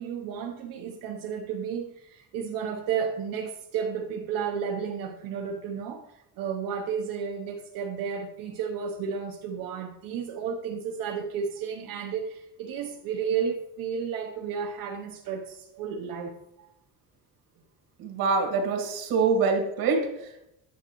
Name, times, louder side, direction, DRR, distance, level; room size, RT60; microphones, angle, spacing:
voice 1, 0.0-16.4, right 7 dB, 70° right, 0.8 m, -32 dB
voice 2, 18.0-20.5, right 4 dB, 85° right, 1.9 m, -25 dB
9.4 x 7.2 x 3.0 m
cardioid pair, 165°, 36 cm